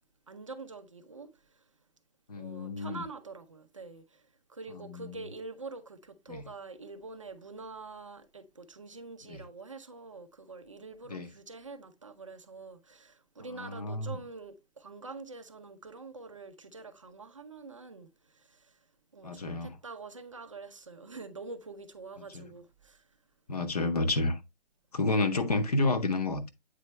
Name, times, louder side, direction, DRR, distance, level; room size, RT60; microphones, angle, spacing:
voice 1, 0.3-1.5 2.4-18.8 19.1-23.0, right 3 dB, 35° right, 0.5 m, -46 dB
voice 2, 2.3-3.0 4.7-5.2 6.3-6.4 9.3-9.4 11.1-11.3 13.5-14.2 19.2-19.7 22.3-22.4 23.5-24.4 24.9-26.5, left 2 dB, 40° left, 0.8 m, -30 dB
8.3 x 4.3 x 3.0 m
hypercardioid pair, 175°, 30 cm